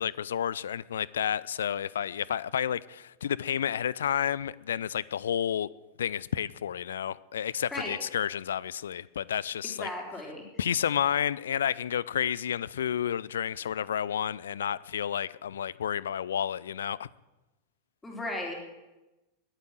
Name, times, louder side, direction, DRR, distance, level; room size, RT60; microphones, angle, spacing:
voice 1, 0.0-5.7 6.0-9.9 10.6-17.1, left 9 dB, 65° left, 0.5 m, -30 dB
voice 2, 9.8-10.4 18.0-18.5, left 1 dB, 10° left, 4.3 m, -35 dB
21.0 x 9.0 x 7.8 m
figure-of-eight pair, 90°, 0 cm